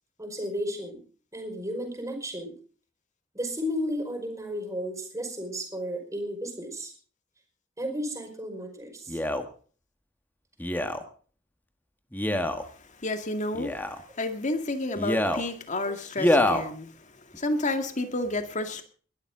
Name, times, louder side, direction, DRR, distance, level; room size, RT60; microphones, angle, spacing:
voice 1, 0.2-1.0 1.3-2.5 3.3-6.9 7.8-9.2 15.9-16.0, equal, 15° right, 5 dB, 5.2 m, -33 dB
Male speech man speaking, 9.1-9.4 10.6-11.0 12.1-12.6 13.5-14.0 15.0-15.4 16.2-16.6 17.3-17.4, left 1 dB, 10° left, 1.6 m, -25 dB
voice 2, 12.6-18.8, left 2 dB, 40° left, 7 dB, 2.1 m, -31 dB
21.5 x 12.5 x 3.9 m, 0.42 s
head